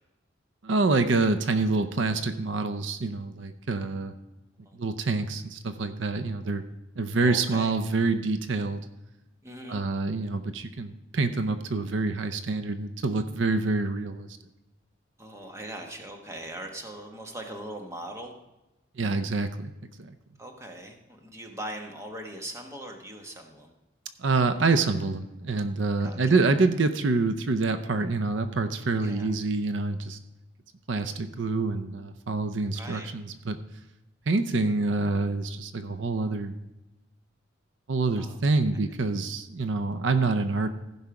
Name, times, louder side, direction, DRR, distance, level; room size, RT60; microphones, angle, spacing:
voice 1, 0.6-4.1 4.7-6.6 7.0-8.8 9.7-14.3 19.0-19.7 20.0-20.1 24.2-30.2 30.9-33.6 34.3-36.5 37.9-40.7, right 3 dB, 75° right, 9 dB, 0.6 m, -26 dB
voice 2, 7.2-7.8 9.4-9.8 15.2-18.3 20.4-23.7 26.0-26.2 29.0-29.3 32.7-33.1 38.1-38.4, right 1 dB, 15° right, 3 dB, 1.1 m, -40 dB
15.5 x 5.5 x 4.7 m, 0.98 s
head